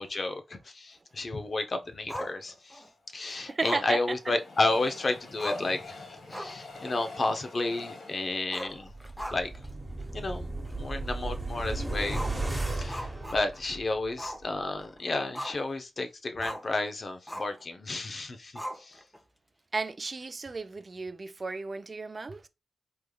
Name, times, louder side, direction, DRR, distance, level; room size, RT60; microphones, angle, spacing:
voice 1, 0.0-2.8 3.1-8.9 9.3-9.5 10.1-12.2 12.8-19.0, left 2 dB, 50° left, 0.6 m, -32 dB
Growling, 2.1-2.9 3.6-4.9 5.1-5.2 5.4-5.8 6.2-6.7 7.0-7.1 8.4-9.7 10.0-10.1 10.7-10.8 12.1-13.7 14.2-14.5 14.8-15.7 16.4-16.7 17.3-17.6 18.6-19.2, equal, 5° left, 0.7 m, -39 dB
Train, 2.8-10.1 10.6-10.7 10.9-11.0, left 3 dB, 75° left, 1.1 m, -47 dB
voice 2, 3.3-4.3 19.7-22.5, right 3 dB, 45° right, 0.4 m, -34 dB
sound 1, 8.8-14.1 14.4-14.5, right 2 dB, 15° right, 1.0 m, -35 dB
3.4 x 3.2 x 2.3 m
supercardioid pair, 40°, 0 cm